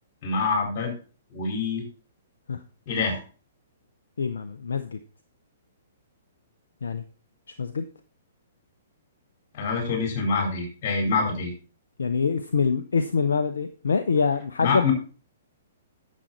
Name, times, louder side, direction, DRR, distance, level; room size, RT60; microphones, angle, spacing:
voice 1, 0.2-0.9 1.3-1.8 2.9-3.2 9.5-11.5 14.6-14.9, left 4 dB, 35° left, 2 dB, 4.7 m, -26 dB
voice 2, 4.2-5.0 6.8-7.0 7.6-7.8 12.0-14.9, left 5 dB, 65° left, 9 dB, 0.7 m, -25 dB
10.0 x 7.5 x 4.3 m, 0.37 s
figure-of-eight pair, 115°, 0 cm